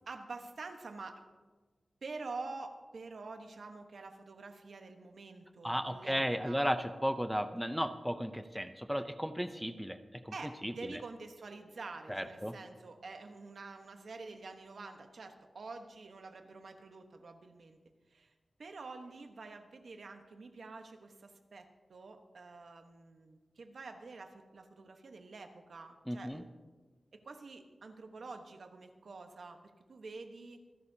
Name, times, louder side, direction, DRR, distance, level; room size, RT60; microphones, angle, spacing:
voice 1, 0.1-1.2 2.0-6.6 10.3-17.8 18.1-18.3 18.6-26.5 27.1-29.6 29.9-30.6, right 3 dB, 75° right, 6 dB, 1.2 m, -47 dB
voice 2, 5.6-10.3 10.6-11.0 12.1-12.6 26.1-26.4, equal, ahead, 9 dB, 0.6 m, -35 dB
26.5 x 11.5 x 2.8 m, 1.4 s
wide cardioid pair, 110°, 0 cm